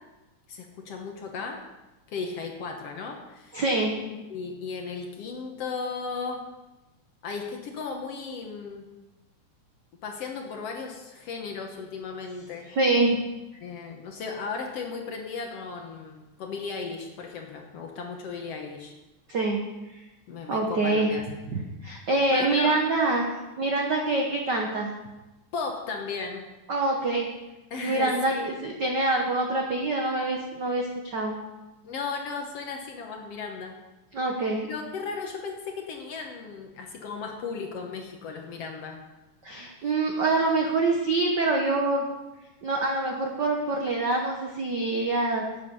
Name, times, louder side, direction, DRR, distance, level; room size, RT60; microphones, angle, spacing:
voice 1, 0.5-1.6 2.1-3.6 4.0-6.4 7.2-8.9 10.0-12.7 13.6-18.9 20.3-21.2 22.3-22.7 25.5-26.4 27.7-28.5 31.8-33.7 34.6-39.0, left 5 dB, 65° left, 2 dB, 1.7 m, -35 dB
voice 2, 3.5-3.9 12.8-13.2 19.3-19.6 19.9-20.0 20.5-21.1 21.5-23.2 23.6-24.9 26.7-27.3 27.8-31.3 34.1-34.6 39.4-42.1 42.6-45.4, right 2 dB, 85° right, 1 dB, 0.9 m, -25 dB
11.5 x 8.5 x 5.4 m, 1.1 s
omnidirectional pair, 3.7 m